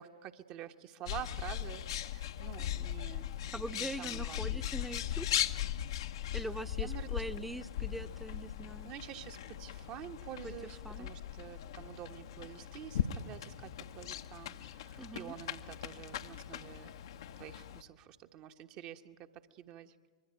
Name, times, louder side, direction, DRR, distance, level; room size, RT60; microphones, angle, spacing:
voice 1, 0.0-5.0 6.7-7.1 8.8-16.9 17.4-19.9, right 11 dB, 40° right, 6 dB, 1.3 m, -48 dB
Bird, 1.1-17.8, left 11 dB, 65° left, 1.0 m, -39 dB
voice 2, 3.5-5.3 6.3-8.9 10.4-10.5 10.8-11.1 15.0-15.3, right 1 dB, 5° right, 12 dB, 1.0 m, -42 dB
25.5 x 23.0 x 9.1 m, 1.4 s
figure-of-eight pair, 95°, 3 cm